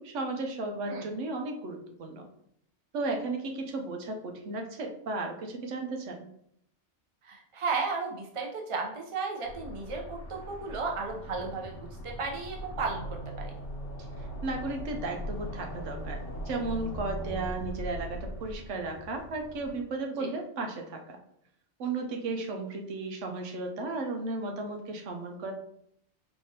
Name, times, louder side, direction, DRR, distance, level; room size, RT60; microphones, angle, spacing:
voice 1, 0.0-2.3 2.9-6.3 14.2-21.2 21.8-25.5, right 3 dB, 90° right, 3 dB, 1.1 m, -35 dB
voice 2, 7.2-13.5 20.1-20.3, right 4 dB, 35° right, 0 dB, 0.7 m, -34 dB
sound 1, 9.4-19.8, equal, 70° left, 1.3 m, -40 dB
4.8 x 3.3 x 2.8 m, 0.72 s
omnidirectional pair, 1.2 m